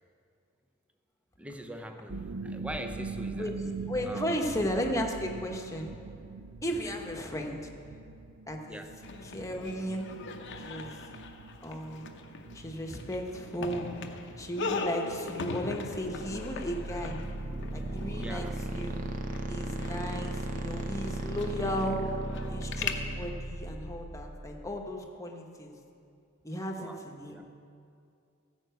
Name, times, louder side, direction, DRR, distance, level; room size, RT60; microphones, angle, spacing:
voice 1, 1.4-3.5 4.1-4.3 6.8-7.0 8.7-8.9 16.2-16.3 18.2-18.6 26.8-27.4, equal, 5° right, 5 dB, 0.6 m, -42 dB
sound 1, 2.1-18.2, right 4 dB, 70° right, 0.6 m, -44 dB
voice 2, 3.9-5.9 6.6-7.6 8.5-8.9 9.2-10.1 10.7-11.0 11.6-12.1 12.5-14.0 14.4-17.2 17.7-19.1 19.5-22.1 22.5-25.8 26.4-27.4, equal, 15° left, 1 dB, 1.1 m, -35 dB
sound 2, 9.0-22.9, left 4 dB, 60° left, 0.8 m, -40 dB
sound 3, 16.0-24.8, right 2 dB, 40° right, 0.8 m, -36 dB
14.5 x 5.4 x 8.0 m, 2.4 s
head